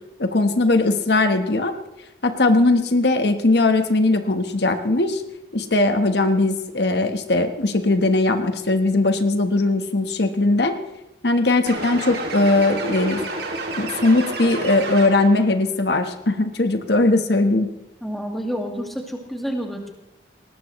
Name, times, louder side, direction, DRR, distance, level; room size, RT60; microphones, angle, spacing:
voice 1, 0.2-1.7 2.2-5.2 5.5-10.8 11.2-13.2 13.8-17.7, left 2 dB, 70° left, 7 dB, 1.2 m, -19 dB
sound 1, 11.7-15.4, right 2 dB, 65° right, 2.5 m, -30 dB
voice 2, 18.0-19.9, equal, ahead, 1 dB, 1.9 m, -29 dB
19.5 x 19.0 x 3.1 m, 0.92 s
head